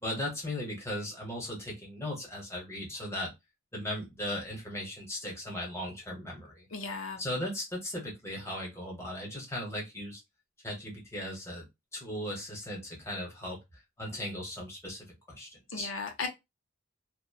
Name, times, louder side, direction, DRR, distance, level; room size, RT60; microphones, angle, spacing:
voice 1, 0.0-3.3 3.7-6.7 7.2-10.2 10.6-11.7 11.9-15.9, left 1 dB, 15° left, 0.9 m, -37 dB
voice 2, 6.7-7.2 15.7-16.3, left 4 dB, 85° left, 0.6 m, -36 dB
2.9 x 2.0 x 2.2 m
head